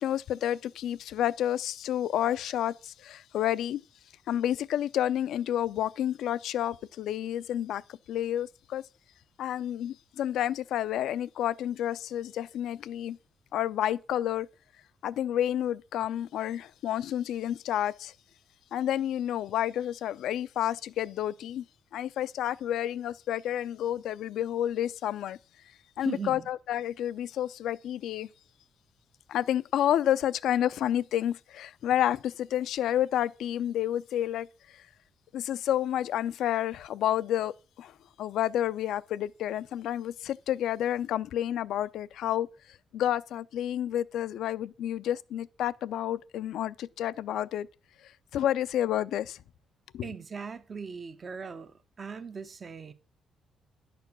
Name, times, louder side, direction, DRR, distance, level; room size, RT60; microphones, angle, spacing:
voice 1, 0.0-3.8 4.3-8.8 9.4-13.2 13.5-14.5 15.0-18.1 18.7-21.6 21.9-25.4 26.0-28.3 29.3-34.5 35.3-42.5 42.9-47.7 48.0-49.4 49.9-50.1, left 11 dB, 80° left, 0.5 m, -30 dB
voice 2, 26.0-26.5 50.0-52.9, right 5 dB, 40° right, 0.8 m, -39 dB
10.5 x 6.9 x 6.0 m
cardioid pair, 90°, 0 cm